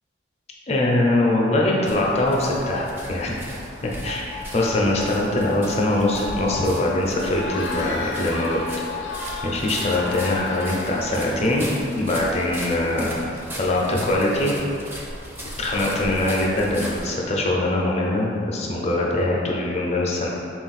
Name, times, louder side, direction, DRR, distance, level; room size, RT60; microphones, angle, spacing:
voice 1, 0.7-3.4 3.8-8.6 9.4-11.7 11.9-13.2 13.6-14.5 15.6-20.3, left 1 dB, 35° left, -2 dB, 0.5 m, -22 dB
sound 1, 1.8-17.1, equal, 15° right, 0.5 m, -37 dB
sound 2, 4.0-11.0, left 5 dB, 65° right, 1.1 m, -36 dB
Cheering / Crowd, 7.4-12.0, left 2 dB, 90° left, 0.5 m, -35 dB
3.8 x 2.4 x 4.0 m, 2.5 s
head